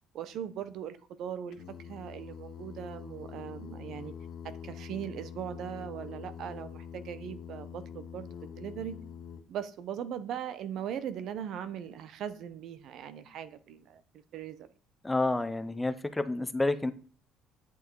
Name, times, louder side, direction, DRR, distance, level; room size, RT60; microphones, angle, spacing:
voice 1, 0.1-4.1 4.4-8.3 8.6-9.0 9.5-14.0 14.3-14.7, right 9 dB, 55° right, 0.9 m, -39 dB
Singing, 1.5-9.4, left 8 dB, 50° left, 1.4 m, -45 dB
voice 2, 15.0-16.9, left 2 dB, 10° left, 0.7 m, -29 dB
10.5 x 8.4 x 4.7 m
cardioid pair, 150°, 0 cm